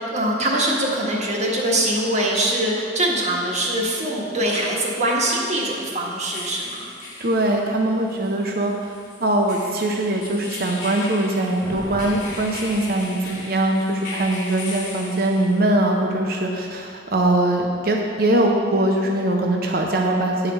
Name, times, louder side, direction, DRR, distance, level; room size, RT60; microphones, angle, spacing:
voice 1, 0.1-6.9, right 1 dB, 40° right, -2 dB, 1.3 m, -23 dB
sound 1, 4.3-15.8, left 3 dB, 45° left, 1.5 m, -38 dB
voice 2, 7.2-8.9 9.2-20.5, right 1 dB, 55° right, 1 dB, 0.7 m, -21 dB
Thunder, 11.6-13.8, equal, ahead, 0.8 m, -37 dB
9.7 x 4.9 x 5.5 m, 2.3 s
head